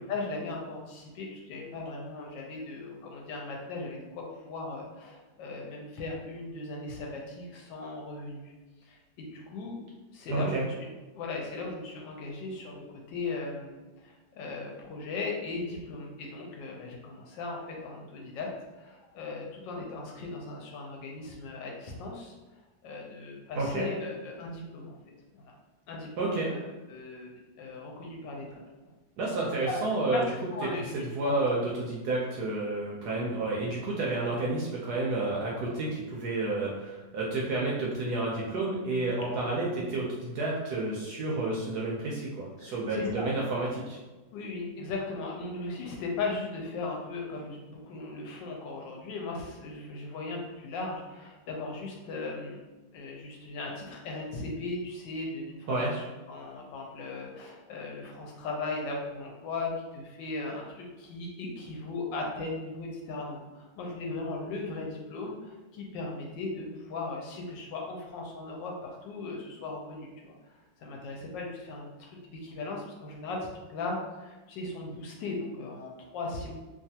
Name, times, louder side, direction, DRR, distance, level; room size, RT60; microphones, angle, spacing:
voice 1, 0.0-8.5 8.8-9.8 10.1-10.7 11.1-18.5 18.8-22.3 22.8-24.9 25.3-25.4 25.9-26.6 26.9-28.6 29.7-29.8 30.1-30.2 30.5-31.4 42.7-43.3 44.3-52.6 52.9-76.5, left 3 dB, 75° left, -1 dB, 1.2 m, -38 dB
voice 2, 10.3-10.6 23.5-23.9 26.2-26.5 29.2-30.2 30.8-44.0 55.7-55.9, right 2 dB, 75° right, -4 dB, 0.9 m, -30 dB
3.1 x 2.3 x 2.7 m, 1.2 s
omnidirectional pair, 2.1 m